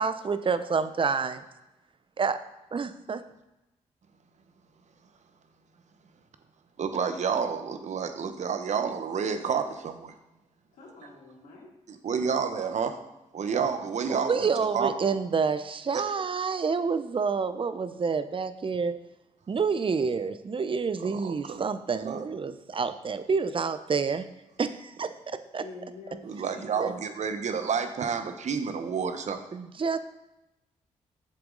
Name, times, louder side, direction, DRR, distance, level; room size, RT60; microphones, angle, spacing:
voice 1, 0.0-1.4 2.2-2.4 2.7-3.2 14.1-19.0 19.5-24.2 24.6-25.6 26.8-26.9 29.5-30.0, right 5 dB, 40° right, 12 dB, 0.7 m, -28 dB
voice 2, 6.8-10.1 11.9-13.0 13.3-14.9 15.9-16.0 21.0-21.7 22.0-22.3 26.2-29.4, right 6 dB, 60° right, 8 dB, 1.0 m, -30 dB
voice 3, 10.7-11.7 25.6-26.8, left 3 dB, 80° left, -5 dB, 3.3 m, -46 dB
7.7 x 6.9 x 3.9 m, 0.97 s
supercardioid pair, 55°, 13 cm